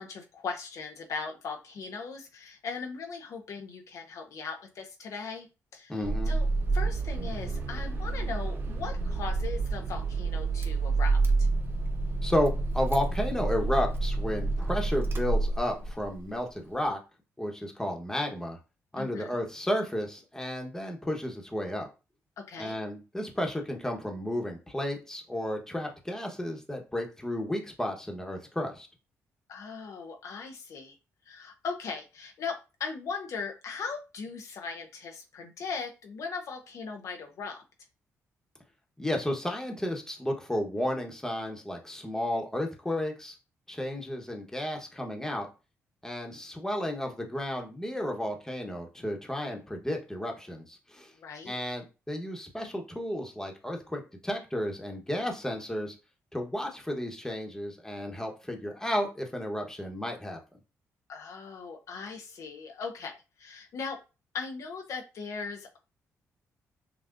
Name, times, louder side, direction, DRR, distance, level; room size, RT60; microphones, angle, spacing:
voice 1, 0.0-5.5 5.7-6.5 6.7-11.5 19.0-19.4 22.4-22.7 29.5-31.0 31.3-37.6 51.2-51.6 61.1-64.0 64.3-65.8, left 5 dB, 65° left, 3 dB, 0.6 m, -39 dB
voice 2, 5.9-6.3 12.2-17.0 17.4-18.6 18.9-21.9 22.6-28.9 39.0-43.4 43.7-45.5 46.0-51.1 51.4-55.9 56.3-60.4, left 1 dB, 10° left, 2 dB, 1.1 m, -32 dB
Car / Engine starting, 6.0-16.1, right 3 dB, 40° right, 0.7 m, -29 dB
5.8 x 2.3 x 2.6 m, 0.30 s
cardioid pair, 80°, 6 cm